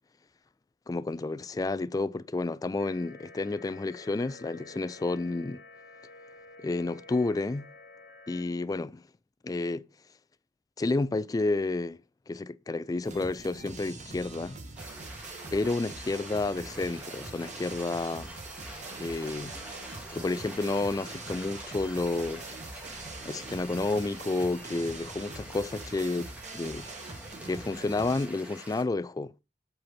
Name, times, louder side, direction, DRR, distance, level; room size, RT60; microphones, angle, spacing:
voice 1, 0.9-5.6 6.6-7.7 8.3-9.0 9.4-9.9 10.8-12.0 12.3-14.6 15.5-18.3 19.0-19.5 20.1-22.5 23.2-26.9 27.4-29.3, left 3 dB, 20° left, 0.3 m, -30 dB
sound 1, 2.8-8.4, left 3 dB, 60° left, 1.4 m, -50 dB
sound 2, 13.0-28.3, right 3 dB, 45° right, 1.2 m, -43 dB
sound 3, 14.8-28.8, right 1 dB, 10° right, 1.6 m, -46 dB
7.9 x 4.3 x 5.6 m
head